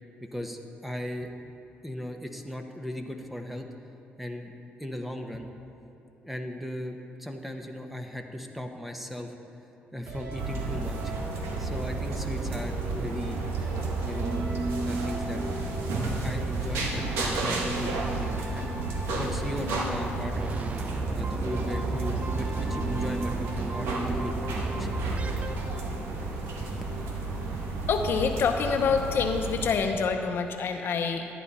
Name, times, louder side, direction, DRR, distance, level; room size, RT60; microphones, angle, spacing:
voice 1, 0.3-1.3 1.8-3.7 4.2-4.5 4.8-5.5 6.2-9.3 9.9-11.1 11.6-13.4 14.0-14.5 14.8-15.4 16.2-18.7 19.1-20.5 21.1-24.9 26.6-26.7, equal, 5° right, 4 dB, 1.0 m, -37 dB
sound 1, 10.1-25.8, right 3 dB, 70° right, 1.8 m, -39 dB
sound 2, 10.4-29.7, right 2 dB, 85° right, 1.3 m, -32 dB
sound 3, 20.3-26.5, right 5 dB, 30° right, 0.4 m, -35 dB
voice 2, 27.9-31.3, left 5 dB, 60° left, 5 dB, 0.8 m, -26 dB
13.5 x 10.0 x 4.2 m, 2.8 s
cardioid pair, 90°, 4 cm